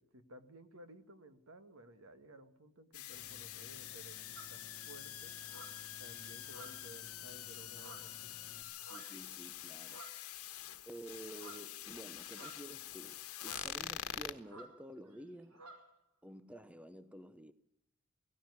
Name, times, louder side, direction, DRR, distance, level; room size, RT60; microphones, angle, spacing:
voice 1, 0.0-4.2 4.5-5.3 6.0-8.3, right 1 dB, 65° right, 1.8 m, -56 dB
sound 1, 2.9-14.3, left 12 dB, 90° left, 1.4 m, -46 dB
sound 2, 3.1-8.6, left 2 dB, 20° left, 3.3 m, -59 dB
sound 3, 4.4-4.6 5.5-5.8 6.4-7.0 7.7-8.2 8.8-9.2 9.8-10.3 11.3-11.7 12.3-12.9 13.4-13.7 14.4-14.8 15.0-15.2 15.5-15.9, right 3 dB, 85° right, 5.1 m, -54 dB
voice 2, 8.9-10.1 10.4-15.7 16.2-17.5, right 1 dB, 5° right, 0.7 m, -51 dB
18.0 x 17.0 x 9.6 m
head